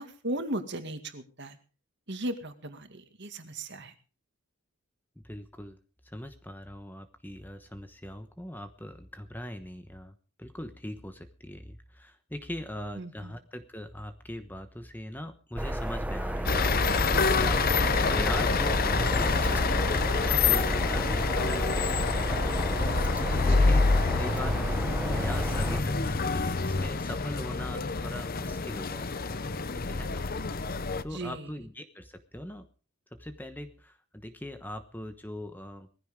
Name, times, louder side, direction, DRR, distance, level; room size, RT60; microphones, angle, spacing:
voice 1, 0.0-1.6 2.1-3.9 13.0-13.3 31.1-31.5, right 1 dB, 50° right, 7 dB, 2.2 m, -36 dB
voice 2, 5.2-5.8 6.0-16.6 17.3-22.5 23.2-29.3 29.7-30.2 31.0-32.7 33.2-35.9, left 1 dB, 10° left, 8 dB, 1.0 m, -41 dB
sound 1, 15.6-25.8, right 1 dB, 5° right, 0.7 m, -32 dB
sound 2, 16.5-31.0, left 4 dB, 40° left, 0.8 m, -27 dB
20.0 x 15.0 x 3.7 m, 0.37 s
head